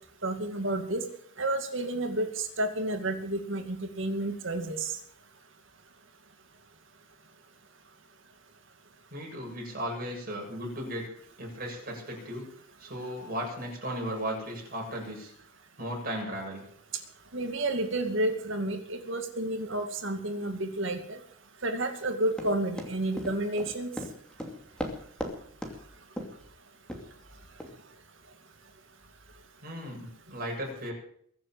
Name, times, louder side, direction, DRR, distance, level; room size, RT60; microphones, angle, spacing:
voice 1, 0.2-1.0 1.4-4.9 17.3-21.2 21.6-23.9, right 1 dB, 60° right, 6 dB, 2.3 m, -30 dB
voice 2, 9.1-11.1 11.4-12.5 12.8-15.3 15.8-16.6 29.6-30.9, equal, 40° right, 0 dB, 7.4 m, -36 dB
Run, 22.4-25.3 25.6-25.8 26.2-26.4 26.9-27.0 27.6-27.7, equal, 5° left, 2.6 m, -36 dB
22.5 x 7.6 x 7.7 m, 0.62 s
head